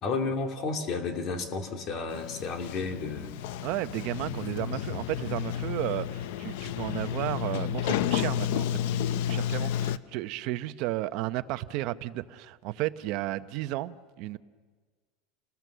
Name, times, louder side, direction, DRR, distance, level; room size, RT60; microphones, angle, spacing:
voice 1, 0.0-3.3 4.3-4.4, left 4 dB, 35° left, 2.9 m, -32 dB
Sliding door, 2.1-10.0, left 10 dB, 70° left, 0.8 m, -31 dB
voice 2, 3.6-14.4, right 16 dB, 50° right, 0.8 m, -33 dB
30.0 x 20.0 x 6.9 m
supercardioid pair, 165°, 0 cm